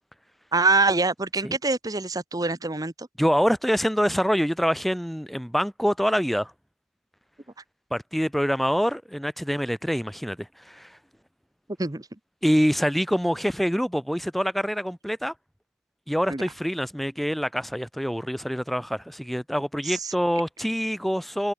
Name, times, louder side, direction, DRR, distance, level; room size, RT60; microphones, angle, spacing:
voice 1, 0.5-3.1 11.8-12.1 16.3-16.4 19.8-20.1, right 3 dB, 20° right, 0.9 m, -25 dB
voice 2, 3.2-6.5 7.9-11.0 12.4-15.3 16.1-21.5, equal, ahead, 2.5 m, -25 dB
head